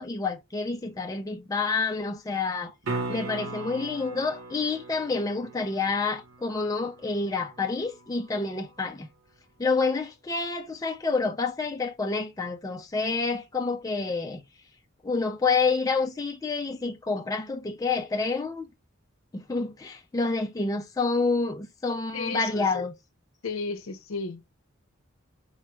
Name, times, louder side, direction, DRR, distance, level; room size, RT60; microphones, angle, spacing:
voice 1, 0.0-2.7 3.1-9.1 9.6-14.4 15.0-18.7 19.3-22.9, left 4 dB, 15° left, 0.3 m, -28 dB
sound 1, 2.8-8.9 13.5-13.6, right 2 dB, 80° right, 0.9 m, -39 dB
voice 2, 22.1-22.9 23.4-24.4, left 4 dB, 80° left, 0.6 m, -34 dB
4.2 x 2.3 x 3.0 m
head